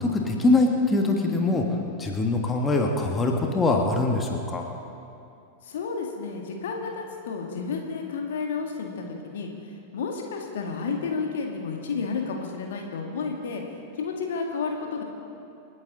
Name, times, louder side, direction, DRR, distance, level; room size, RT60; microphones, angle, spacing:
voice 1, 0.0-1.6 2.0-4.7, left 2 dB, 15° left, 1 dB, 1.7 m, -23 dB
voice 2, 5.6-9.5 9.9-13.6 14.0-15.0, left 5 dB, 60° left, 2 dB, 1.9 m, -31 dB
28.0 x 9.5 x 3.9 m, 2.6 s
figure-of-eight pair, 90°, 0 cm